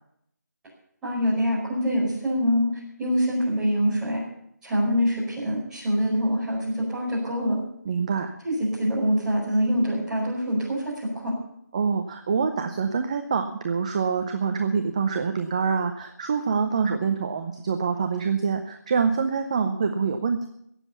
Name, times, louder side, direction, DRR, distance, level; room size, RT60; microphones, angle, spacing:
voice 1, 1.0-2.7 3.0-4.2 4.6-7.6 8.4-11.3, equal, 5° right, -9 dB, 5.0 m, -24 dB
voice 2, 7.9-8.3 11.7-20.5, right 5 dB, 20° right, 6 dB, 0.6 m, -25 dB
17.5 x 7.5 x 7.0 m, 0.74 s
figure-of-eight pair, 165°, 10 cm